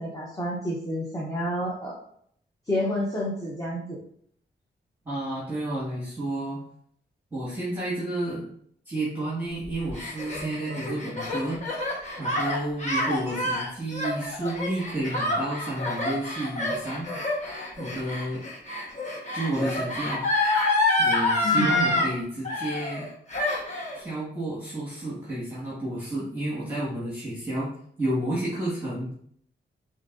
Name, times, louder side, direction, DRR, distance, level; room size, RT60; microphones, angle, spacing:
voice 1, 0.0-2.0 2.7-4.0 21.4-22.1, equal, 15° left, -4 dB, 0.8 m, -29 dB
voice 2, 5.1-6.6 7.3-8.5 8.9-11.6 12.2-17.1 17.8-18.4 19.3-20.2 21.0-23.1 23.9-27.7 28.0-29.1, right 1 dB, 10° right, -9 dB, 1.7 m, -31 dB
Gasp, 9.6-22.1 22.4-23.0 23.3-24.0, left 2 dB, 35° left, 1.3 m, -27 dB
6.9 x 2.7 x 2.6 m, 0.66 s
wide cardioid pair, 120°, 19 cm